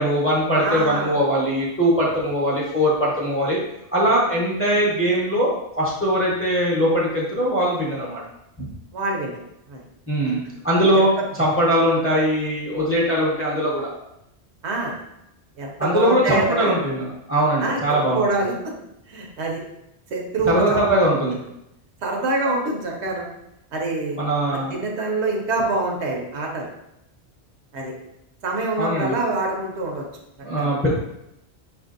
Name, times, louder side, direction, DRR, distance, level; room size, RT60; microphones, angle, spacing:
voice 1, 0.0-3.6 3.9-8.2 8.6-8.7 10.1-10.4 10.6-11.1 11.3-13.9 15.8-18.2 20.4-21.4 24.2-24.7 28.8-29.2 30.4-30.9, equal, 15° left, -5 dB, 0.7 m, -21 dB
voice 2, 0.6-1.2 8.9-9.4 9.7-9.8 10.9-11.1 14.6-14.9 15.6-16.7 17.6-18.5 19.1-19.6 20.1-21.1 22.0-23.3 23.7-24.2 24.7-26.7 27.7-27.9 28.4-30.0 30.6-30.7, right 2 dB, 75° right, 0 dB, 1.0 m, -25 dB
4.7 x 2.6 x 2.5 m, 0.83 s
omnidirectional pair, 1.2 m